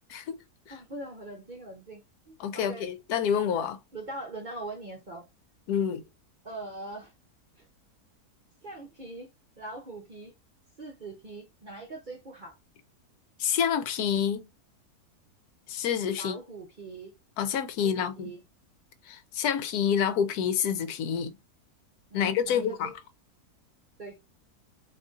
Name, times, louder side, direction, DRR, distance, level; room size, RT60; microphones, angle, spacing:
voice 1, 0.7-2.9 3.9-5.3 6.4-7.1 7.6-7.7 8.6-9.3 9.6-10.3 10.8-12.6 16.1-17.1 17.8-18.4 22.1-22.9 24.0-24.2, right 2 dB, 45° right, 0.6 m, -42 dB
voice 2, 2.4-3.8 5.7-6.0 13.4-14.4 15.7-16.4 17.4-18.3 19.1-21.3 22.1-22.9, left 8 dB, 75° left, 1.1 m, -28 dB
2.8 x 2.6 x 3.7 m
omnidirectional pair, 1.7 m